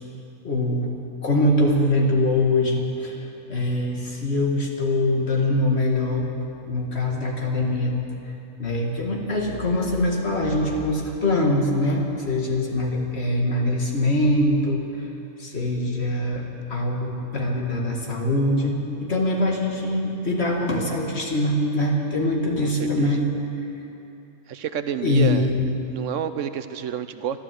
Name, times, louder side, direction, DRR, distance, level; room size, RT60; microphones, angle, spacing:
voice 1, 0.4-0.9 1.2-3.2 3.5-6.3 6.6-8.0 8.6-14.8 15.4-16.4 16.7-23.3 25.0-25.6, left 1 dB, 50° left, 0 dB, 2.1 m, -23 dB
voice 2, 22.6-23.1 24.5-25.5 25.9-27.4, right 9 dB, 65° right, 11 dB, 0.9 m, -29 dB
13.0 x 12.5 x 7.6 m, 2.9 s
omnidirectional pair, 1.5 m